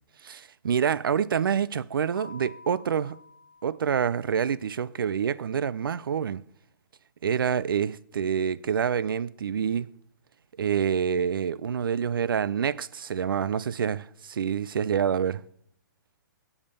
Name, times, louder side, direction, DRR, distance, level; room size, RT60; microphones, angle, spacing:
voice 1, 0.2-3.2 3.6-6.4 7.2-9.9 10.6-15.4, right 7 dB, 90° right, 0.4 m, -27 dB
Keyboard (musical), 2.1-4.7, left 3 dB, 60° right, 4.5 m, -50 dB
8.5 x 7.2 x 5.3 m
hypercardioid pair, 145°, 11 cm